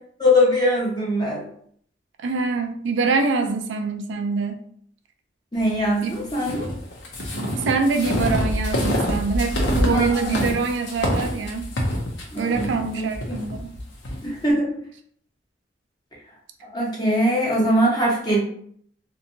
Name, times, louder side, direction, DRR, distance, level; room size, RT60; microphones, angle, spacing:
voice 1, 0.2-1.4 5.5-6.7 9.9-10.4 12.3-13.0 14.2-14.7 16.7-18.4, equal, 25° left, -4 dB, 0.8 m, -21 dB
voice 2, 2.2-4.6 6.0-6.1 7.3-11.7 12.4-13.8 18.3-18.4, right 4 dB, 85° right, 6 dB, 0.3 m, -25 dB
sound 1, 6.3-14.2, equal, 85° left, 0.6 m, -26 dB
2.6 x 2.2 x 2.7 m, 0.62 s
head